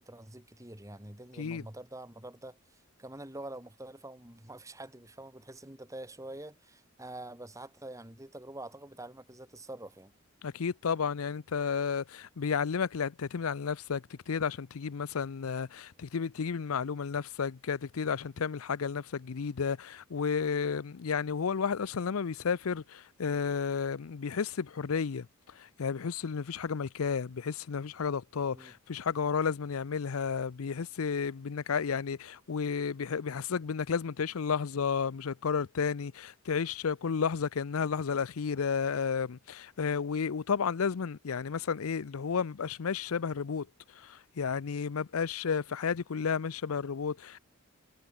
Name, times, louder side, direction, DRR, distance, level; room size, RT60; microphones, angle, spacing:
voice 1, 0.0-2.6 3.0-10.1 28.5-28.7, right 1 dB, 15° right, 2.6 m, -46 dB
voice 2, 10.4-43.7 43.9-47.4, left 6 dB, 80° left, 0.5 m, -32 dB
head